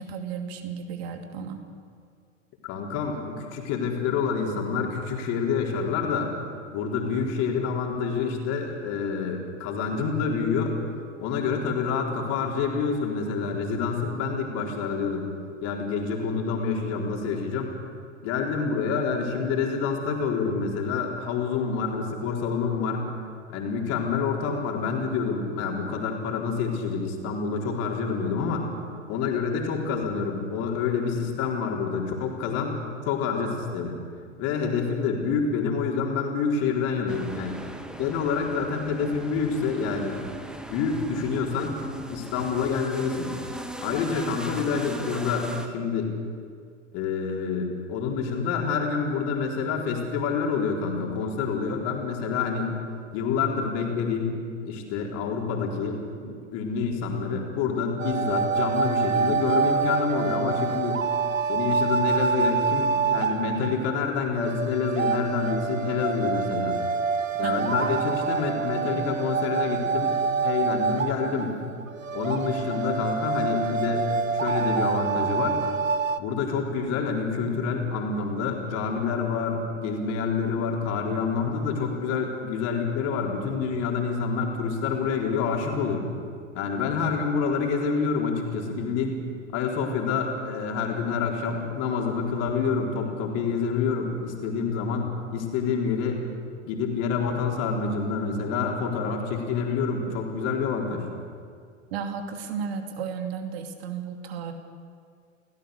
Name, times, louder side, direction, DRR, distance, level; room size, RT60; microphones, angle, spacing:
voice 1, 0.0-1.6 67.4-67.7 101.9-104.5, right 6 dB, 50° right, 5 dB, 2.7 m, -33 dB
voice 2, 2.6-6.3 6.7-10.7 11.2-15.3 15.6-17.7 18.2-23.1 23.5-28.7 29.1-32.8 33.1-33.9 34.4-37.6 38.0-40.3 40.7-43.3 43.8-46.1 46.9-52.7 53.1-54.4 54.6-61.0 61.5-66.8 67.3-70.1 70.4-71.6 72.1-75.6 76.2-86.1 86.5-89.2 89.5-96.2 96.7-101.1, left 5 dB, 40° left, 0 dB, 4.3 m, -27 dB
sound 1, 37.1-45.7, right 1 dB, ahead, 1.3 m, -38 dB
sound 2, 58.0-76.2, right 5 dB, 85° right, 0.9 m, -26 dB
29.0 x 17.0 x 6.8 m, 2.2 s
figure-of-eight pair, 95°, 38 cm